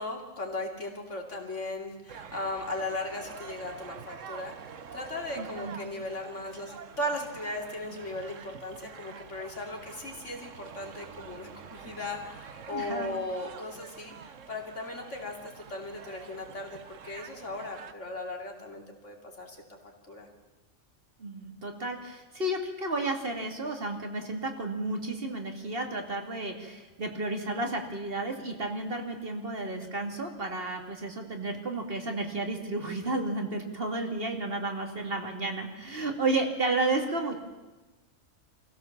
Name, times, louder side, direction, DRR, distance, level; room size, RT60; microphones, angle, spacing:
voice 1, 0.0-19.6 20.1-20.3, left 2 dB, 75° left, 1 dB, 3.2 m, -37 dB
sound 1, 2.1-17.9, right 7 dB, 85° right, 1.4 m, -47 dB
voice 2, 5.4-5.8 12.7-13.1 21.2-37.4, right 2 dB, 50° right, 3 dB, 2.5 m, -32 dB
25.0 x 16.0 x 7.2 m, 1.1 s
omnidirectional pair, 1.3 m